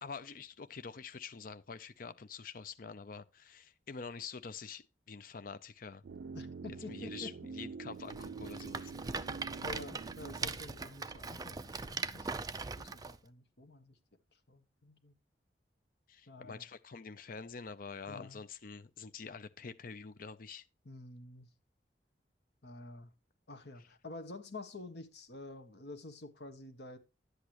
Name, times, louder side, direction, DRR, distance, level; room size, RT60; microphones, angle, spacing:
voice 1, 0.0-6.0 6.9-8.9 16.1-20.6, left 5 dB, 50° left, 0.6 m, -46 dB
sound 1, 6.0-12.1 12.3-12.4, right 4 dB, 75° right, 0.4 m, -47 dB
voice 2, 6.3-7.5 9.0-9.2 9.6-14.0 14.3-15.1 16.3-16.6 18.1-18.5 20.8-21.5 22.6-23.1 23.5-27.0, left 2 dB, 65° left, 1.5 m, -49 dB
Rattle, 8.1-13.2, right 4 dB, 20° right, 0.5 m, -40 dB
11.0 x 8.3 x 3.0 m
head